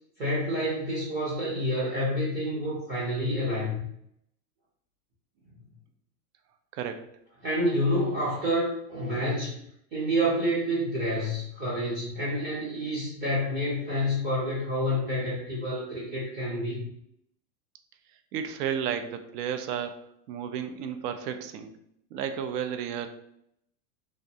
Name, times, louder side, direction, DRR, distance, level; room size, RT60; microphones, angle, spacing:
voice 1, 0.2-3.8 7.4-9.6 9.9-16.9, equal, 25° right, -6 dB, 0.5 m, -28 dB
voice 2, 6.7-7.0 18.3-20.0 20.3-21.7 22.1-23.1, right 8 dB, 75° right, 7 dB, 0.6 m, -32 dB
2.5 x 2.1 x 2.7 m, 0.73 s
supercardioid pair, 140°, 48 cm